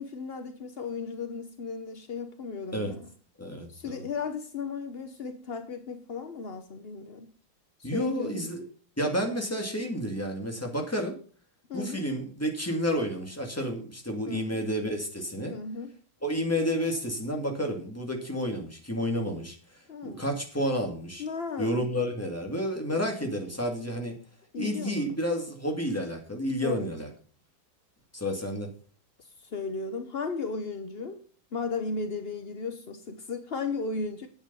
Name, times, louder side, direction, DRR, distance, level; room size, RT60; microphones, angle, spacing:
voice 1, 0.0-3.1 3.7-7.3 7.8-8.5 11.7-12.1 14.2-14.6 15.5-15.9 19.9-20.3 21.2-21.9 24.5-25.1 26.6-26.9 29.4-31.2 31.5-34.3, left 4 dB, 70° left, 0.5 m, -35 dB
voice 2, 3.4-4.0 7.8-8.6 9.0-11.2 11.7-15.5 16.2-19.6 20.0-21.2 21.6-24.2 24.6-27.1 28.1-28.7, equal, 5° left, 2.1 m, -30 dB
9.3 x 8.7 x 5.4 m
omnidirectional pair, 2.4 m